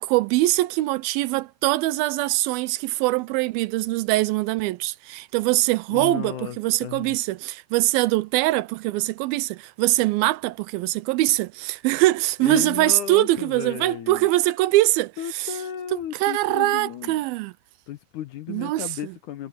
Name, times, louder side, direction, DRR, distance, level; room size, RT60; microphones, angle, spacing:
voice 1, 0.0-15.5 15.9-17.5 18.5-19.1, right 18 dB, 85° right, 2.4 m, -23 dB
voice 2, 5.9-7.2 12.4-14.3 15.2-17.2 17.9-19.5, left 10 dB, 70° left, 2.1 m, -34 dB
omnidirectional pair, 4.3 m